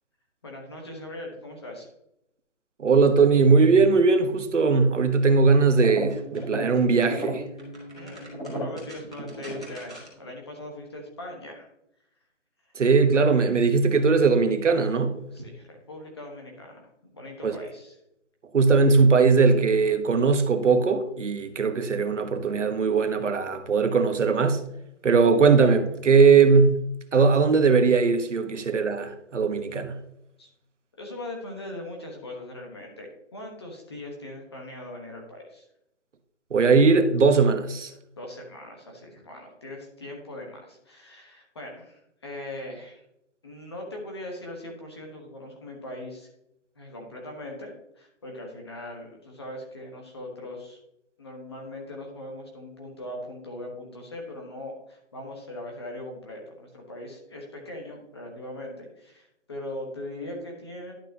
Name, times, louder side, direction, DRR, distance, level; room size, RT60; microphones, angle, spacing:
voice 1, 0.4-1.9 7.9-11.7 15.3-18.0 30.4-30.5 31.0-35.6 38.2-43.0 43.4-46.3 46.7-50.8 51.2-60.9, left 1 dB, 20° left, 1.2 m, -40 dB
voice 2, 2.8-7.4 12.8-15.2 17.4-17.6 18.5-24.6 25.0-26.8 27.1-30.0 36.5-37.9, right 4 dB, 75° right, 1.2 m, -20 dB
sound 1, 5.7-10.3, equal, 5° left, 0.8 m, -35 dB
11.5 x 6.0 x 2.8 m
hypercardioid pair, 175°, 37 cm